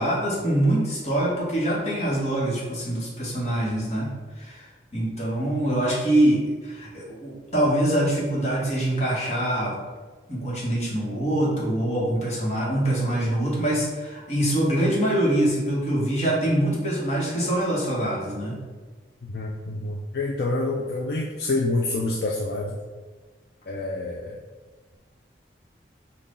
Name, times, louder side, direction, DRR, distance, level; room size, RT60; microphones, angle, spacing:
voice 1, 0.0-4.7 4.9-9.7 10.3-18.6, right 1 dB, 35° left, -5 dB, 1.2 m, -24 dB
voice 2, 19.2-22.8 23.7-24.4, left 2 dB, 60° left, -2 dB, 0.4 m, -27 dB
5.5 x 2.4 x 3.9 m, 1.3 s
head